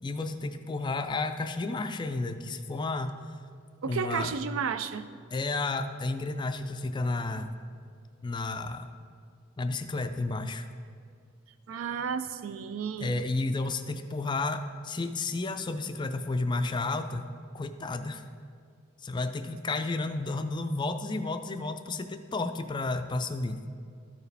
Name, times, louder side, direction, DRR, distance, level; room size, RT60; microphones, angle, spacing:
voice 1, 0.0-3.1 3.8-4.3 5.3-7.5 8.2-8.9 9.6-10.7 13.0-17.3 17.5-18.2 19.0-23.6, left 3 dB, 20° left, 8 dB, 0.3 m, -32 dB
voice 2, 3.8-5.0 11.7-13.1, right 6 dB, 85° right, 12 dB, 0.4 m, -32 dB
13.0 x 4.7 x 3.3 m, 2.2 s
head